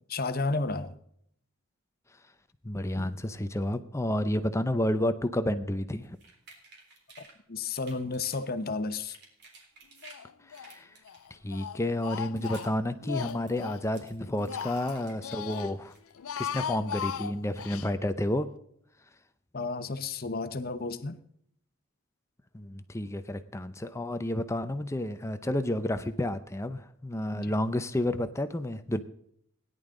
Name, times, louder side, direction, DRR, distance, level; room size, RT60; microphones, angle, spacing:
voice 1, 0.1-0.9 2.9-3.2 7.5-9.2 19.5-21.2 27.3-27.5, left 3 dB, 45° left, 1.0 m, -32 dB
voice 2, 2.6-6.2 10.5-10.9 11.3-15.9 16.4-18.5 22.5-29.0, left 1 dB, 15° left, 0.6 m, -30 dB
sound 1, 6.0-7.4 7.7-8.5 8.9-10.2 10.5-11.5 12.0-12.8 13.1-15.6 15.9-16.9, right 3 dB, 55° right, 3.5 m, -55 dB
Speech, 10.0-10.7 11.0-13.9 14.2-15.7 16.1-17.9, left 8 dB, 85° left, 0.5 m, -38 dB
17.5 x 11.0 x 3.8 m
head